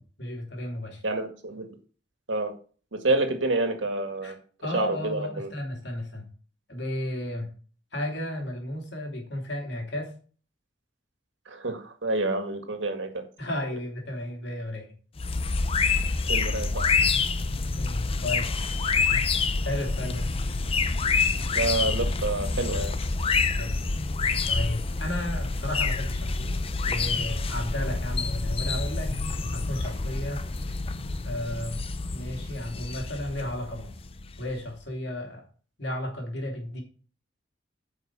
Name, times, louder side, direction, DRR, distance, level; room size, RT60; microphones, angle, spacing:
voice 1, 0.2-1.0 4.2-4.3 4.6-6.3 6.7-7.5 7.9-10.1 13.4-14.9 17.8-18.5 19.6-20.3 23.6-23.8 24.5-29.2 29.5-30.4 31.2-31.8 32.1-33.9 34.4-35.4 35.8-36.8, left 1 dB, 65° left, 2 dB, 2.9 m, -33 dB
voice 2, 1.0-1.7 2.3-2.5 2.9-4.4 4.7-5.5 11.5-13.2 16.3-16.8 21.5-22.9, right 2 dB, 90° right, 5 dB, 2.0 m, -28 dB
sound 1, 15.2-34.6, left 4 dB, 30° left, 0.6 m, -27 dB
9.2 x 5.5 x 6.1 m, 0.41 s
head